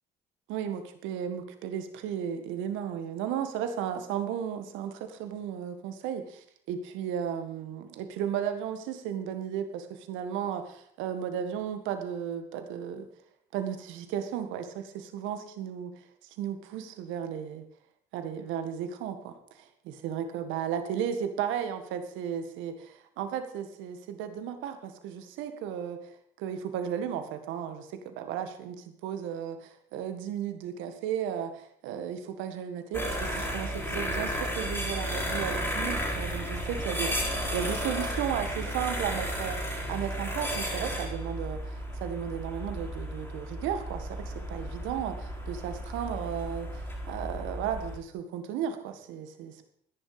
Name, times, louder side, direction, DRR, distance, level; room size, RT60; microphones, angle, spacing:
voice 1, 0.5-13.1 13.5-15.9 16.4-17.6 18.1-26.0 26.4-49.6, right 9 dB, 75° right, 8 dB, 1.8 m, -34 dB
sound 1, 32.9-48.0, equal, 10° left, 7.1 m, -33 dB
14.0 x 10.5 x 5.0 m, 0.64 s
hypercardioid pair, 60°, 20 cm